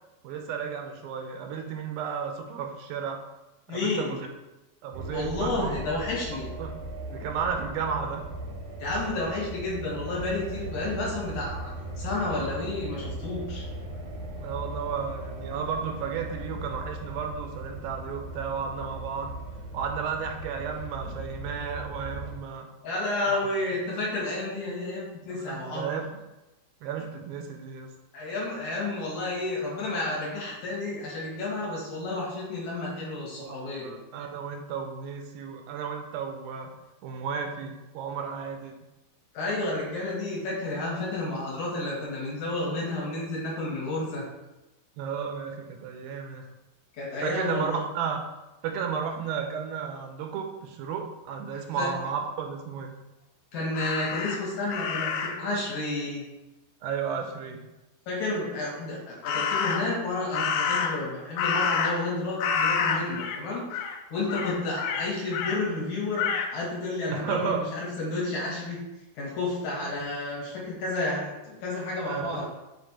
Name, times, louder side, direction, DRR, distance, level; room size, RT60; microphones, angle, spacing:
voice 1, 0.2-3.2 3.7-4.3 4.8-5.7 6.6-6.7 7.1-8.2 14.4-19.3 19.7-22.7 23.3-23.5 25.3-26.2 26.8-27.9 33.4-36.7 37.0-38.8 45.0-46.5 47.2-48.2 48.6-53.0 56.8-57.6 59.3-59.4 67.1-67.6 69.8-69.9 72.1-72.5, right 6 dB, 85° right, 4 dB, 2.4 m, -33 dB
voice 2, 3.7-4.1 5.1-6.5 8.8-13.6 22.8-25.8 28.1-33.9 39.3-44.2 46.9-47.8 51.8-51.9 53.5-56.3 58.1-63.7 64.1-68.8 69.1-72.5, left 2 dB, 60° left, -5 dB, 2.7 m, -31 dB
sound 1, 4.9-22.4, right 1 dB, 65° right, 1.6 m, -38 dB
Crow, 53.7-55.5 59.2-60.0 60.3-62.1 62.4-63.4 63.7-64.0 64.3-65.6 66.2-66.5, left 6 dB, 90° left, 2.5 m, -28 dB
7.0 x 3.3 x 4.2 m, 1.0 s
omnidirectional pair, 4.3 m